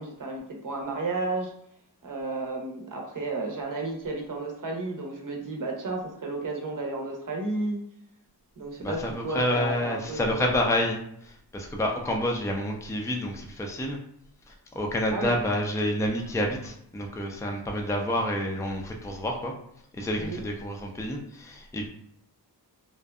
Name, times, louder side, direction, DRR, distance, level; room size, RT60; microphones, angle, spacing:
voice 1, 0.0-1.5 2.0-7.8 8.6-10.7 15.1-15.3 20.2-20.4, right 2 dB, 55° right, 1 dB, 0.7 m, -32 dB
voice 2, 8.8-14.0 14.5-19.5 19.9-21.9, left 1 dB, 10° left, 1 dB, 0.4 m, -29 dB
2.6 x 2.2 x 2.3 m, 0.73 s
cardioid pair, 60°, 38 cm